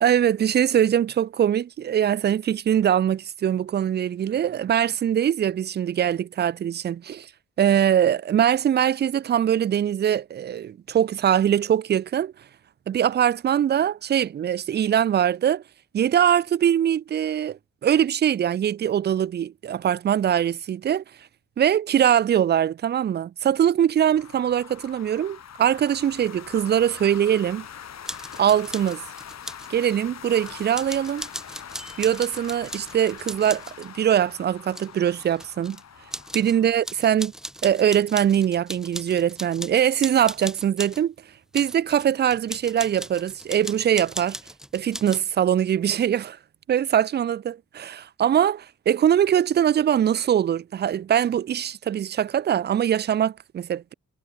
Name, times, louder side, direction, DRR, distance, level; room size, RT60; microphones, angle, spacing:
voice 1, 0.0-7.3 7.6-12.3 12.9-15.6 15.9-21.0 21.6-27.7 28.4-29.0 29.7-31.3 32.0-35.8 36.3-37.3 37.6-41.1 41.5-44.4 44.7-46.4 46.7-53.9, right 9 dB, 35° right, 0.4 m, -22 dB
sound 1, 24.1-36.8, left 8 dB, 60° left, 6.3 m, -43 dB
sound 2, 28.1-29.7 30.5-33.9 34.6-35.8 36.1-36.6 36.8-41.0 41.5-45.2, equal, ahead, 0.6 m, -38 dB
cardioid pair, 125°, 29 cm